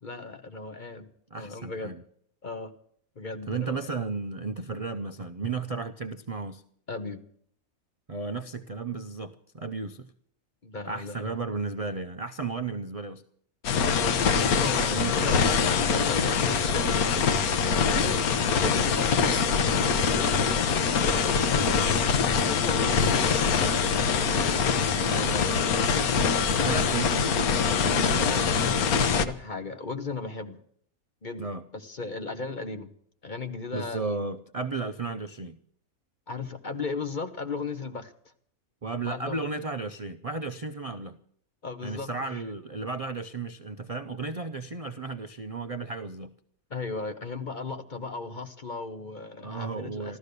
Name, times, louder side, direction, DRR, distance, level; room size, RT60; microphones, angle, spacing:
voice 1, 0.0-1.1 1.4-1.9 2.4-2.7 3.2-3.9 6.9-7.2 10.6-11.4 13.7-23.9 24.2-24.7 28.3-28.6 29.0-30.6 31.2-31.4 31.7-32.9 33.2-34.2 36.3-38.1 39.1-39.5 41.6-42.4 46.7-50.2, left 4 dB, 35° left, 8 dB, 1.0 m, -36 dB
voice 2, 1.3-2.0 3.5-6.6 8.1-10.1 10.8-13.2 14.9-15.5 25.0-25.7 26.6-27.4 27.8-28.5 31.4-31.6 33.7-35.6 38.8-41.2 41.8-46.3 49.4-50.2, right 4 dB, 40° right, 8 dB, 0.5 m, -34 dB
sound 1, 13.6-29.2, left 6 dB, 90° left, 1.4 m, -24 dB
14.0 x 13.5 x 6.7 m, 0.62 s
omnidirectional pair, 1.5 m